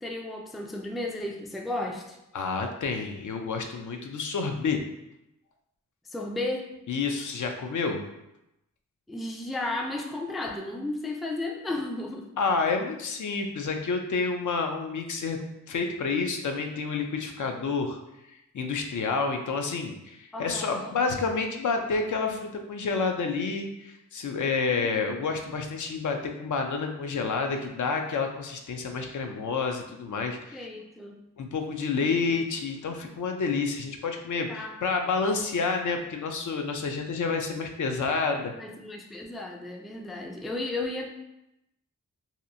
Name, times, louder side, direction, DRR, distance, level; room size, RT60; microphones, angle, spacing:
voice 1, 0.0-2.2 6.1-6.7 9.1-12.3 20.3-20.9 24.7-25.0 30.5-31.2 32.3-32.4 34.5-34.7 38.5-41.1, left 2 dB, ahead, 2 dB, 0.3 m, -34 dB
voice 2, 2.3-4.8 6.9-8.0 12.4-15.4 15.7-18.0 18.5-30.7 31.4-38.5, left 4 dB, 65° left, 4 dB, 0.4 m, -29 dB
2.8 x 2.4 x 2.6 m, 0.87 s
cardioid pair, 50°, 33 cm